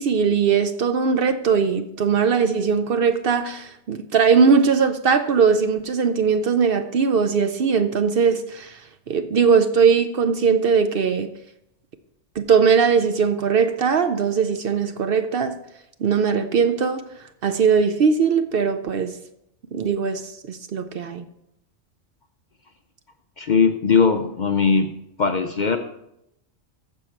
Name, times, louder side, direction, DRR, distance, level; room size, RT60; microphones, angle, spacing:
voice 1, 0.0-8.8 9.1-11.3 12.4-15.6 16.0-17.1 17.4-19.2 19.7-21.2, right 6 dB, 60° right, 0.7 m, -20 dB
voice 2, 23.4-24.9 25.2-25.8, left 5 dB, 55° left, 0.5 m, -19 dB
14.5 x 5.4 x 4.5 m
omnidirectional pair, 1.3 m